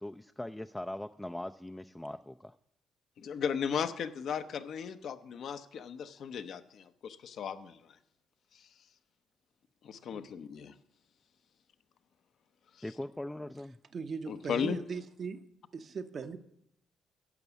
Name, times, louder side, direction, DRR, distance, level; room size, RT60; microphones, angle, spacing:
voice 1, 0.0-2.5 10.1-10.3 12.8-13.8, left 1 dB, 10° left, 0.4 m, -41 dB
voice 2, 3.2-7.8 8.5-8.7 9.8-10.7 12.7-12.8 14.3-14.8, left 7 dB, 65° left, 0.7 m, -36 dB
voice 3, 13.9-15.4 15.7-16.4, right 5 dB, 50° right, 0.8 m, -39 dB
11.0 x 6.1 x 8.1 m
cardioid pair, 90°, 0 cm